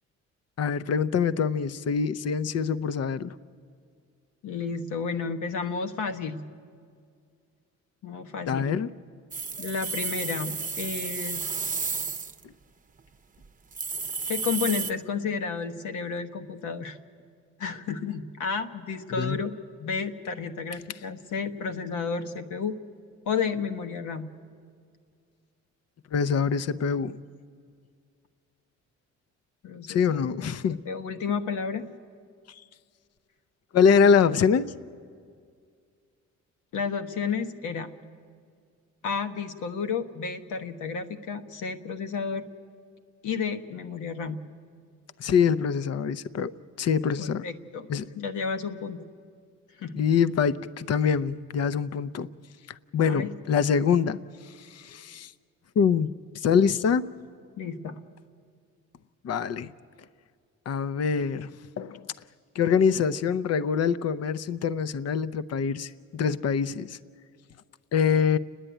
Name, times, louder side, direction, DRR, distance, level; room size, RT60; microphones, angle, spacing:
voice 1, 0.6-3.3 8.5-8.9 19.1-19.4 26.1-27.2 29.9-30.8 33.7-34.7 45.2-46.5 46.8-47.4 47.9-48.1 50.0-52.3 52.9-54.2 54.6-55.3 55.8-56.1 56.3-57.0 59.2-59.7 60.7-61.5 61.8-62.1 62.5-67.0 67.9-68.4, left 6 dB, 55° left, 13 dB, 0.7 m, -24 dB
voice 2, 4.4-6.4 8.0-8.7 9.6-11.4 14.3-17.0 17.6-19.5 19.8-22.8 23.3-24.3 29.6-30.3 30.8-31.8 36.7-37.9 39.0-42.4 43.2-44.4 47.2-47.9 48.1-49.0 49.8-50.0 53.0-53.3 57.6-58.0, left 5 dB, 80° left, 7 dB, 1.2 m, -31 dB
sound 1, 9.3-12.4 13.0-13.1 13.4-13.5 13.7-14.9, right 5 dB, 25° right, 0.8 m, -32 dB
30.0 x 10.0 x 9.1 m, 2.2 s
cardioid pair, 90°, 30 cm